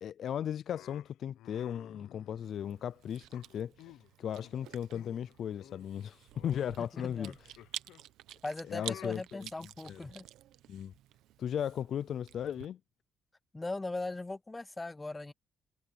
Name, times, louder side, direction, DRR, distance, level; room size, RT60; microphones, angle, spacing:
voice 1, 0.0-3.7 4.2-7.3 8.7-9.5 9.9-10.0 10.7-10.9 11.4-12.8, left 9 dB, 65° left, 0.4 m, -36 dB
sound 1, 0.7-2.8 3.3-4.1 4.4-4.6 4.9-5.3 5.6-8.0 8.8-9.1, left 13 dB, 90° left, 0.8 m, -53 dB
Chewing mastication, 2.4-12.7, right 13 dB, 90° right, 0.8 m, -50 dB
voice 2, 6.8-7.4 8.4-10.3 13.5-15.3, left 2 dB, 20° left, 0.6 m, -39 dB
cardioid pair, 90°, 0 cm